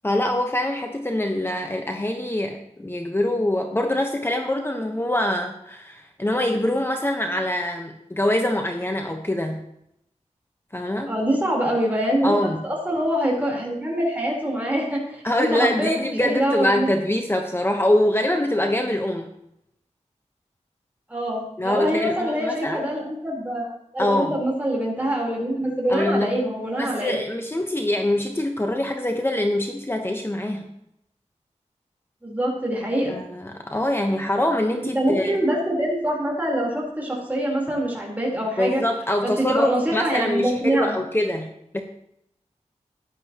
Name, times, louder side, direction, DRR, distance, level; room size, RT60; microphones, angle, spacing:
voice 1, 0.0-9.6 10.7-11.2 12.2-12.6 15.2-19.3 21.6-22.8 24.0-24.4 25.9-26.4 26.8-30.7 33.1-35.4 38.6-41.5 41.7-41.8, left 1 dB, 20° left, 3 dB, 1.1 m, -24 dB
voice 2, 11.1-12.4 12.6-16.9 21.1-23.7 23.9-27.2 32.2-33.2 34.9-38.8 39.2-41.0, equal, 15° right, -3 dB, 3.9 m, -24 dB
14.5 x 10.5 x 3.0 m, 0.78 s
wide cardioid pair, 65°, 12 cm